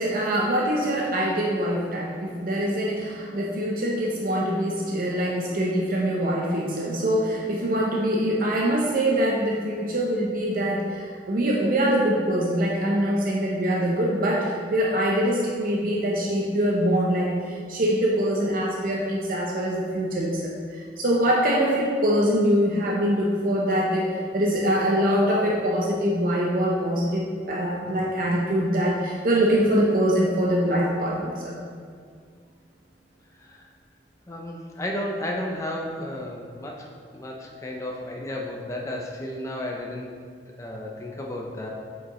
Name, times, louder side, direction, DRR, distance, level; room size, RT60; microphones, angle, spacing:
voice 1, 0.0-31.6, equal, 50° right, -3 dB, 0.6 m, -24 dB
voice 2, 34.3-36.9 37.1-40.1 40.6-41.7, left 1 dB, 15° left, -1 dB, 0.5 m, -33 dB
8.3 x 4.8 x 3.0 m, 2.1 s
head